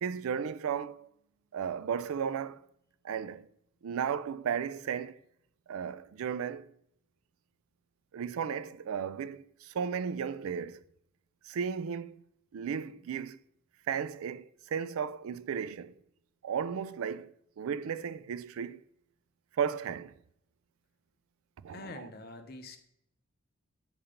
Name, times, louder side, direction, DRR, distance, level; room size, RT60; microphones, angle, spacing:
voice 1, 0.0-1.1 1.5-2.6 3.0-3.5 3.8-5.2 5.7-6.7 8.1-10.8 11.4-12.2 12.5-13.4 13.9-15.9 16.4-18.8 19.5-20.1 21.6-22.1, right 7 dB, 80° right, 0.4 m, -35 dB
voice 2, 21.7-22.8, left 2 dB, 45° left, 0.7 m, -45 dB
8.6 x 2.9 x 5.0 m
head